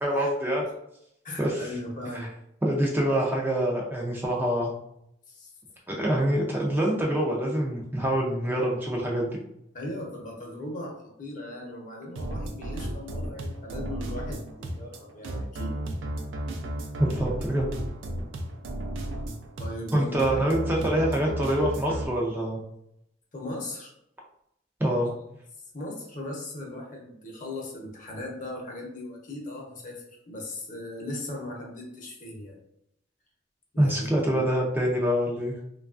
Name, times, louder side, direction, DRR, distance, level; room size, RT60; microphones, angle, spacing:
voice 1, 0.0-0.6 1.4-1.7 2.1-2.3 2.6-4.7 5.9-9.3 17.0-17.7 19.9-22.6 24.8-25.1 33.8-35.5, right 1 dB, 10° right, -2 dB, 0.4 m, -25 dB
voice 2, 1.2-2.3 5.3-5.5 9.7-15.8 19.6-20.4 23.3-23.9 25.0-25.1 25.7-32.6 33.7-34.4, left 1 dB, 45° left, -1 dB, 0.7 m, -38 dB
sound 1, 12.2-22.0, right 1 dB, 80° right, 0.4 m, -34 dB
3.0 x 2.3 x 2.4 m, 0.76 s
head